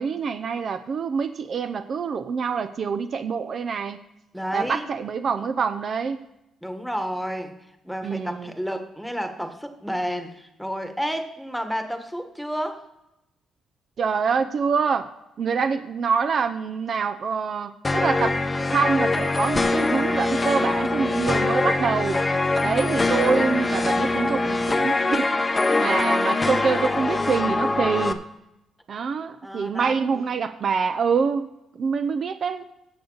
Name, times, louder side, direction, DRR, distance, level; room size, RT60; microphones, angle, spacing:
voice 1, 0.0-4.0 4.5-6.2 8.0-8.5 14.0-15.1 15.4-18.3 18.7-22.2 22.6-25.3 25.8-28.2 28.9-31.5 31.8-32.6, right 5 dB, 55° right, 9 dB, 0.6 m, -25 dB
voice 2, 4.3-4.9 6.6-7.6 7.8-12.8 25.6-26.0 29.4-30.3, equal, ahead, 6 dB, 1.3 m, -31 dB
sound 1, 17.8-28.1, left 2 dB, 20° left, 0.8 m, -23 dB
15.5 x 6.5 x 3.9 m, 0.90 s
cardioid pair, 90°, 0 cm